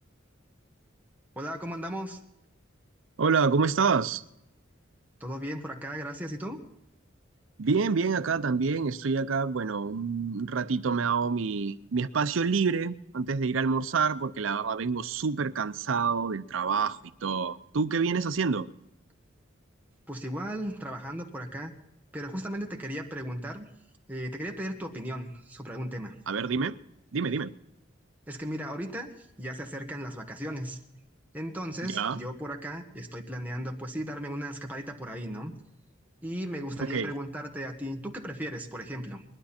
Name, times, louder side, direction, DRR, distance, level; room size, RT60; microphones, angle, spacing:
voice 1, 1.3-2.2 5.2-6.6 20.1-21.7 22.1-23.7 24.1-26.1 28.3-30.8 31.3-35.5 36.2-39.2, equal, 10° right, 1 dB, 1.5 m, -36 dB
voice 2, 3.2-4.2 7.6-18.7 26.3-26.8 27.1-27.5 31.8-32.2 36.9-37.1, right 5 dB, 80° right, 14 dB, 0.6 m, -27 dB
20.5 x 12.0 x 4.3 m, 0.85 s
head